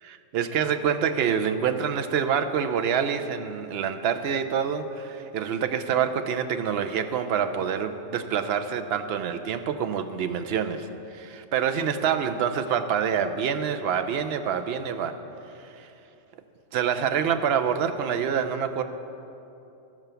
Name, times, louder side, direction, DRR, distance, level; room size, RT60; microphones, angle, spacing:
voice 1, 0.0-15.2 15.6-15.9 16.7-18.8, right 7 dB, 65° right, 8 dB, 0.7 m, -26 dB
13.5 x 4.6 x 6.8 m, 2.9 s
omnidirectional pair, 1.4 m